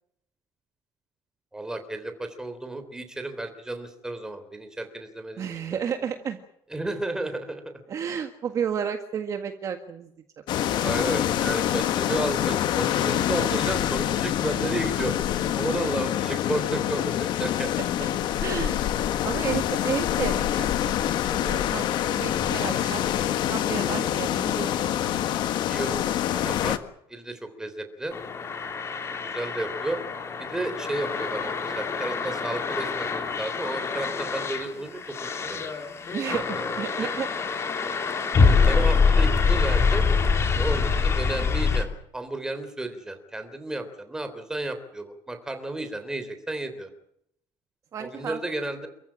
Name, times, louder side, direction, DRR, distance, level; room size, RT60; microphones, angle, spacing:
voice 1, 1.5-5.8 6.7-7.6 10.8-15.2 15.6-17.7 25.7-26.0 26.3-26.8 27.1-28.1 29.2-30.0 30.4-35.7 36.3-36.6 37.0-37.1 38.7-40.1 40.6-46.9 48.0-48.9, right 2 dB, 5° right, 8 dB, 3.5 m, -32 dB
voice 2, 5.4-6.4 7.9-10.1 17.8-18.1 18.4-18.8 19.2-23.1 23.5-25.0 36.1-37.3 47.9-48.4, right 7 dB, 35° right, 7 dB, 1.8 m, -32 dB
sound 1, 10.5-26.8, left 11 dB, 55° left, 1.6 m, -26 dB
sound 2, 28.1-41.8, left 5 dB, 30° left, 3.3 m, -25 dB
28.5 x 15.0 x 8.8 m, 0.73 s
cardioid pair, 175°, 9 cm